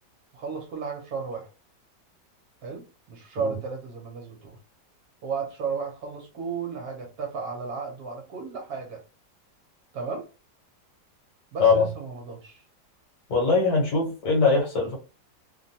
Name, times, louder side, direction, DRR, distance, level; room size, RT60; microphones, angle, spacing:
voice 1, 0.3-1.5 2.6-4.6 5.2-9.0 9.9-10.3 11.5-12.6, right 5 dB, 65° right, 1.1 m, -34 dB
voice 2, 13.3-15.0, left 4 dB, 70° left, 1.5 m, -21 dB
3.1 x 2.2 x 2.6 m
omnidirectional pair, 1.9 m